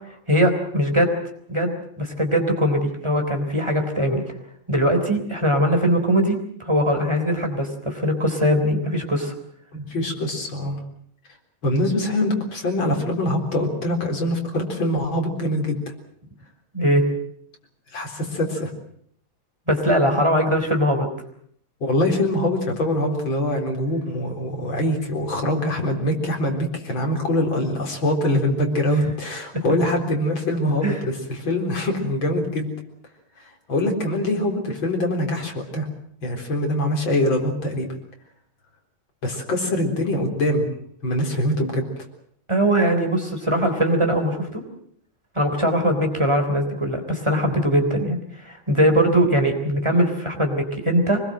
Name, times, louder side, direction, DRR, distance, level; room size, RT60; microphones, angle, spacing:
voice 1, 0.3-1.1 1.5-4.2 4.7-9.3 16.7-17.1 19.7-21.1 29.5-29.6 30.8-31.0 42.5-44.6 45.4-51.2, equal, 15° right, 4 dB, 3.6 m, -21 dB
voice 2, 9.7-10.8 11.6-15.8 17.9-18.7 21.8-32.7 33.4-35.9 36.2-37.9 39.2-40.7 41.0-41.8, left 1 dB, 70° left, 2 dB, 4.7 m, -23 dB
24.0 x 20.5 x 7.7 m, 0.65 s
omnidirectional pair, 2.3 m